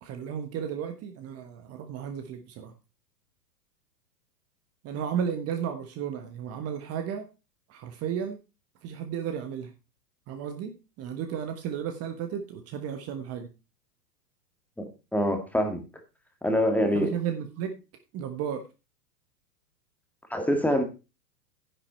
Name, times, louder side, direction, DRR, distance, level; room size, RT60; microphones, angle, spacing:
voice 1, 0.0-2.7 4.8-7.2 7.7-8.4 8.8-9.7 10.3-13.5 16.9-17.8 18.1-18.6, right 8 dB, 30° right, 6 dB, 1.4 m, -33 dB
voice 2, 15.1-15.8 16.4-17.1 20.3-20.8, equal, 5° left, 5 dB, 1.9 m, -24 dB
10.5 x 8.8 x 4.5 m, 0.30 s
hypercardioid pair, 120°, 48 cm